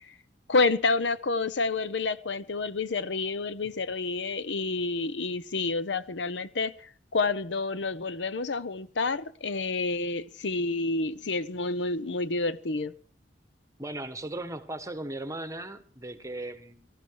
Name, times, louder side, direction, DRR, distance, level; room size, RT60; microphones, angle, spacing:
voice 1, 0.5-12.9, left 3 dB, 90° left, 0.8 m, -29 dB
voice 2, 13.8-16.9, right 2 dB, 20° right, 1.3 m, -37 dB
18.5 x 13.5 x 4.7 m
head